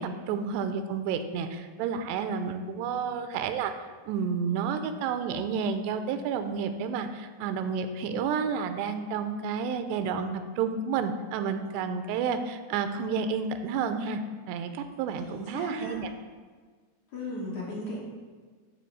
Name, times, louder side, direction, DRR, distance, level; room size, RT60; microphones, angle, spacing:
voice 1, 0.0-3.7 4.1-14.2 14.5-16.1, right 6 dB, 85° right, 8 dB, 2.7 m, -30 dB
voice 2, 15.2-15.9 17.1-18.0, left 1 dB, 60° left, -5 dB, 2.1 m, -36 dB
10.0 x 3.8 x 6.7 m, 1.5 s
omnidirectional pair, 4.8 m